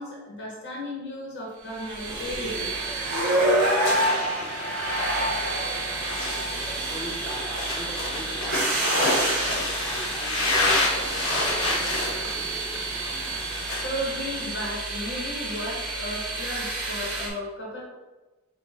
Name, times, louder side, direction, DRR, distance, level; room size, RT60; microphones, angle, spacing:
voice 1, 0.0-2.7 13.8-17.8, equal, 55° left, -3 dB, 1.0 m, -34 dB
sound 1, 1.8-17.3, right 2 dB, 60° right, 1.3 m, -28 dB
sound 2, 2.1-14.5, right 1 dB, 25° right, 1.1 m, -43 dB
sound 3, 3.9-13.8, left 2 dB, 85° left, 1.1 m, -29 dB
voice 2, 6.5-12.0, equal, 10° left, -1 dB, 0.5 m, -42 dB
5.0 x 2.3 x 4.0 m, 1.1 s
head